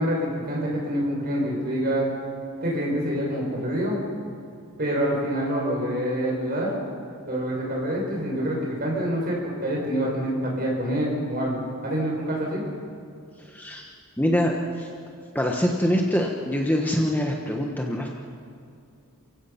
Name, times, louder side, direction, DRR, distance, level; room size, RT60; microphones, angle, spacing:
voice 1, 0.0-2.1 2.6-4.0 4.8-6.7 7.2-12.6, equal, 40° right, -2 dB, 6.5 m, -26 dB
voice 2, 13.4-13.9 14.2-14.9 15.3-18.1, equal, 10° left, 0 dB, 1.2 m, -24 dB
29.0 x 16.0 x 5.8 m, 2.4 s
head